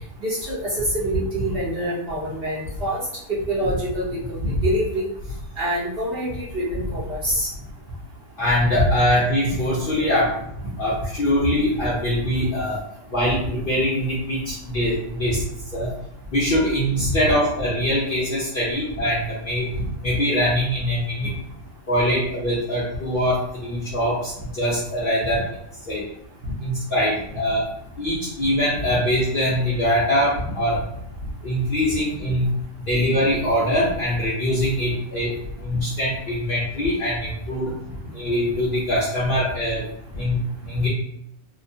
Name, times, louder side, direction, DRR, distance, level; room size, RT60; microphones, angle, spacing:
voice 1, 0.2-5.1 5.6-7.5 9.4-9.6 16.9-17.2, equal, 50° right, -8 dB, 0.8 m, -25 dB
voice 2, 8.4-10.4 10.8-12.8 13.1-15.4 15.7-15.9 16.3-19.7 20.0-21.3 21.9-25.5 25.9-26.0 26.6-27.7 28.0-30.8 31.4-32.5 32.9-37.7 38.1-39.8 40.1-40.4 40.7-40.9, equal, 50° left, -7 dB, 0.7 m, -23 dB
2.9 x 2.2 x 2.6 m, 0.74 s
omnidirectional pair, 1.6 m